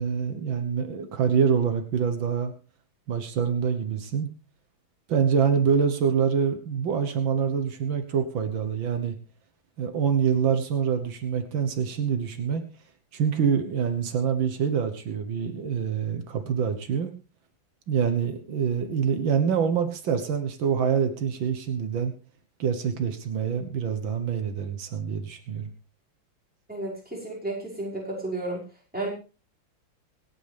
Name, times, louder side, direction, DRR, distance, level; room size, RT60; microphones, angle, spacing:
voice 1, 0.0-2.5 3.1-4.3 5.1-9.2 9.8-12.6 13.1-17.1 17.9-22.1 22.6-25.7, right 7 dB, 80° right, 7 dB, 2.0 m, -25 dB
voice 2, 26.7-28.6 28.9-29.1, right 2 dB, 5° right, -4 dB, 5.7 m, -32 dB
25.5 x 9.2 x 3.5 m, 0.33 s
omnidirectional pair, 2.1 m